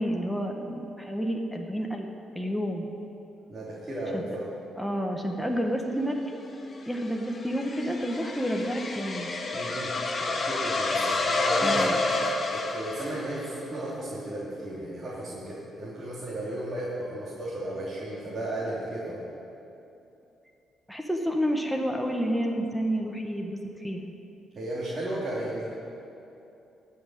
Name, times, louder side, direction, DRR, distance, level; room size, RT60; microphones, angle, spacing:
voice 1, 0.0-2.1 2.3-2.9 4.1-4.2 4.8-6.4 6.9-9.3 11.6-11.9 20.9-24.1, equal, ahead, 2 dB, 1.2 m, -30 dB
voice 2, 3.5-4.5 9.5-12.0 12.5-19.2 24.5-25.7, right 1 dB, 35° right, -7 dB, 3.0 m, -34 dB
sound 1, 6.5-13.6, left 3 dB, 40° left, 1.5 m, -29 dB
16.0 x 5.7 x 9.1 m, 2.8 s
cardioid pair, 90°, 0 cm